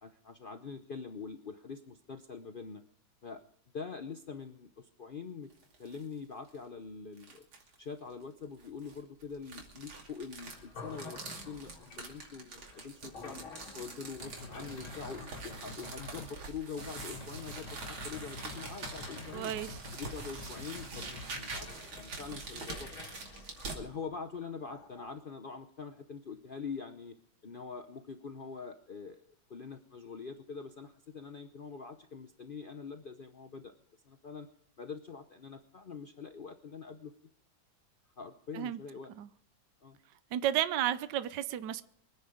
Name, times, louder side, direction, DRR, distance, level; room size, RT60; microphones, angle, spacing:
voice 1, 0.0-2.8 3.2-3.4 3.7-5.5 5.8-7.5 7.8-13.4 13.7-19.5 19.9-22.9 23.7-27.2 27.4-29.2 29.5-33.7 34.1-34.5 34.8-37.1 38.2-39.1 39.8-40.0, left 5 dB, 65° left, 7 dB, 0.5 m, -44 dB
sound 1, 5.5-6.0 6.5-6.6 7.2-7.7 8.6-23.8, right 3 dB, 85° right, 3.5 m, -45 dB
sound 2, 10.4-25.1, left 4 dB, 85° left, 3.4 m, -52 dB
sound 3, 14.2-16.3 16.8-21.7, left 2 dB, 20° left, 3.3 m, -47 dB
voice 2, 19.3-19.8 38.5-38.8 39.2-39.3 40.3-41.8, right 11 dB, 65° right, 13 dB, 1.3 m, -32 dB
24.0 x 9.9 x 5.0 m, 0.66 s
omnidirectional pair, 2.2 m